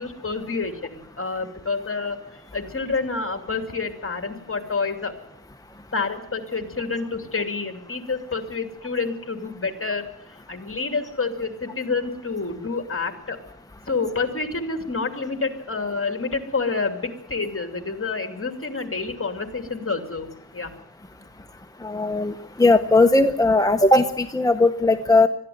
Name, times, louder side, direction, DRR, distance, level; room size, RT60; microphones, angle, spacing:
voice 1, 0.0-5.1 5.9-13.4 13.9-20.3 20.5-20.7, left 4 dB, 45° left, 6 dB, 2.8 m, -28 dB
voice 2, 21.8-25.3, left 2 dB, 10° left, 7 dB, 0.9 m, -18 dB
21.5 x 13.5 x 9.4 m, 0.75 s
wide cardioid pair, 95°, 31 cm